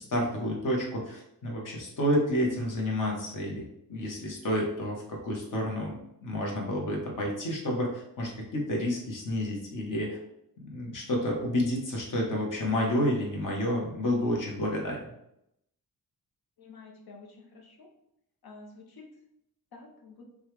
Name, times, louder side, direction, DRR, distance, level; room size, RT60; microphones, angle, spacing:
voice 1, 0.0-10.2 10.6-15.0, left 1 dB, 55° left, -1 dB, 1.2 m, -30 dB
voice 2, 16.6-17.9 18.4-19.1 19.7-20.2, left 3 dB, 80° left, 1 dB, 1.0 m, -50 dB
5.3 x 2.4 x 3.2 m, 0.79 s
wide cardioid pair, 150°, 36 cm